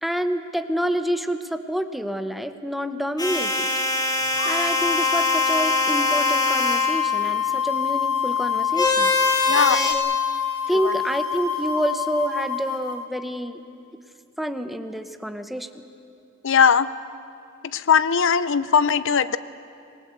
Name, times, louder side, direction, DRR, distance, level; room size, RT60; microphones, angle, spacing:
voice 1, 0.0-3.7 4.4-10.2 10.7-13.6 14.4-15.8, equal, ahead, 8 dB, 0.9 m, -28 dB
sound 1, 3.2-7.0 8.8-9.9, left 1 dB, 20° left, 3.1 m, -24 dB
sound 2, 4.4-13.0, left 8 dB, 80° left, 2.5 m, -25 dB
voice 2, 9.4-9.9 16.4-16.9 17.7-19.4, left 6 dB, 60° left, 15 dB, 0.7 m, -19 dB
26.0 x 19.5 x 8.1 m, 2.5 s
head